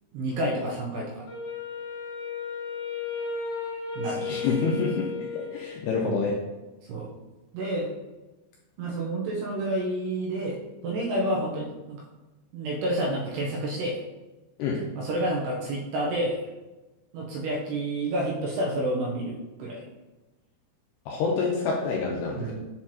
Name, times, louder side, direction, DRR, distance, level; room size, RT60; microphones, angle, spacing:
voice 1, 0.1-1.2 4.0-4.3 6.9-7.1 7.5-7.9 8.8-10.6 10.8-12.0 12.5-14.0 15.0-16.4 17.1-19.8 22.4-22.5, right 1 dB, 75° right, -3 dB, 2.6 m, -29 dB
Wind instrument woodwind instrument, 1.3-5.9, left 4 dB, 70° left, 2.5 m, -34 dB
voice 2, 4.2-5.1 5.3-6.3 14.6-14.8 21.1-22.5, left 4 dB, 85° left, -2 dB, 2.4 m, -27 dB
7.5 x 4.4 x 2.8 m, 1.1 s
omnidirectional pair, 5.4 m